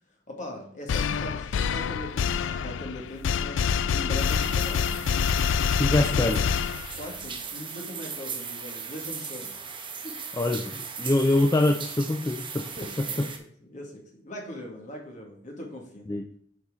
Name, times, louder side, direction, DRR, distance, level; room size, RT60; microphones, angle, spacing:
voice 1, 0.3-5.0 7.0-9.6 9.9-10.2 12.8-13.3 13.6-16.1, left 1 dB, 40° left, 0 dB, 1.9 m, -40 dB
sound 1, 0.9-7.2, left 7 dB, 85° left, 0.4 m, -26 dB
sound 2, 4.2-13.4, right 6 dB, 25° right, 0.9 m, -38 dB
voice 2, 5.8-6.4 10.4-12.7 16.1-16.2, left 2 dB, 20° left, 4 dB, 0.4 m, -24 dB
8.1 x 4.7 x 3.6 m, 0.63 s
head